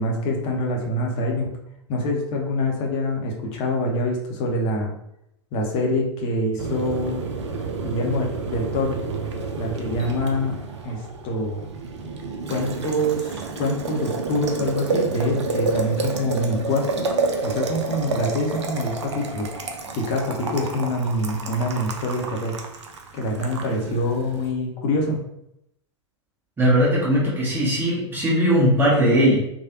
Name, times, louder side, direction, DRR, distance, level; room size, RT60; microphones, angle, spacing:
voice 1, 0.0-1.5 1.9-4.9 5.5-7.2 7.8-9.0 9.6-10.5 10.8-11.6 12.5-17.1 17.4-19.5 19.9-22.6 23.1-25.2, left 1 dB, 35° left, 0 dB, 0.7 m, -25 dB
Boiling, 6.6-24.5, right 4 dB, 65° right, 0.5 m, -30 dB
voice 2, 26.6-29.4, equal, 15° right, -7 dB, 1.3 m, -19 dB
3.1 x 2.2 x 2.7 m, 0.81 s
figure-of-eight pair, 90°, 15 cm